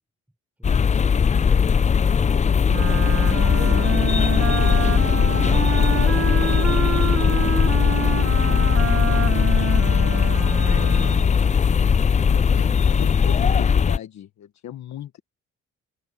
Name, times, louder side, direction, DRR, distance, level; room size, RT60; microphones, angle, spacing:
sound 1, 0.6-14.0, left 6 dB, 25° left, 0.4 m, -19 dB
voice 1, 0.6-4.2 4.6-8.3 10.3-10.8 11.2-13.0 13.2-13.6, right 1 dB, 5° right, 6.2 m, -45 dB
Wind instrument woodwind instrument, 2.7-11.3, right 8 dB, 45° right, 1.4 m, -28 dB
voice 2, 10.6-11.0 12.0-15.2, left 11 dB, 65° left, 1.4 m, -36 dB
cardioid pair, 90°, 30 cm